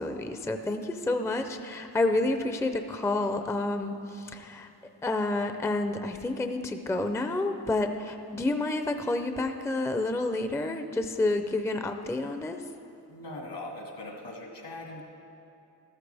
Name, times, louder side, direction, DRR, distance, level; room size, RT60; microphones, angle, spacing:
voice 1, 0.0-4.7 5.0-12.6, left 2 dB, 5° left, 7 dB, 0.4 m, -29 dB
voice 2, 13.1-15.0, left 2 dB, 75° left, 0 dB, 2.1 m, -40 dB
13.5 x 13.0 x 3.4 m, 2.7 s
wide cardioid pair, 90°, 42 cm